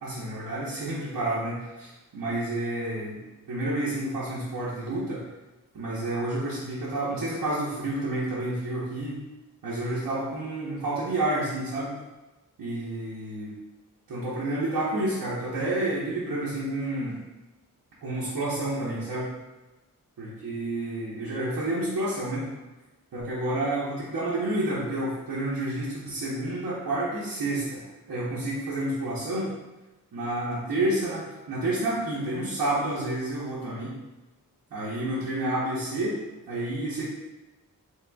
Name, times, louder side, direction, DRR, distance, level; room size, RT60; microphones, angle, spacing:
voice 1, 0.0-3.2 3.5-5.2 5.7-9.2 9.6-11.9 12.6-13.5 14.1-17.2 18.0-19.3 20.2-22.5 23.1-29.5 30.1-33.9 34.7-36.2 36.5-37.0, right 1 dB, 85° right, -9 dB, 1.0 m, -29 dB
4.8 x 3.2 x 2.3 m, 1.1 s
wide cardioid pair, 130°, 34 cm